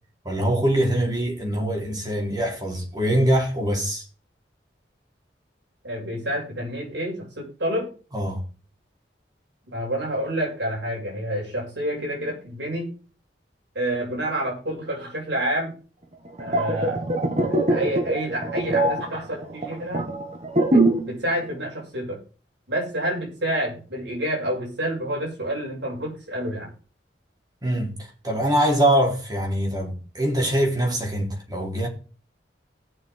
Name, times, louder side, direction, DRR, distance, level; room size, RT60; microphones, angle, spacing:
voice 1, 0.2-4.0 8.1-8.4 27.6-27.9 28.2-31.9, right 1 dB, 25° right, 4.0 m, -23 dB
voice 2, 5.8-7.9 9.7-12.9 13.7-15.7 16.4-20.1 20.7-22.2 22.7-26.7, right 1 dB, 80° right, 7.6 m, -28 dB
sound 1, 16.3-21.2 21.4-21.7, right 2 dB, 40° right, 1.9 m, -23 dB
18.5 x 6.8 x 4.0 m
head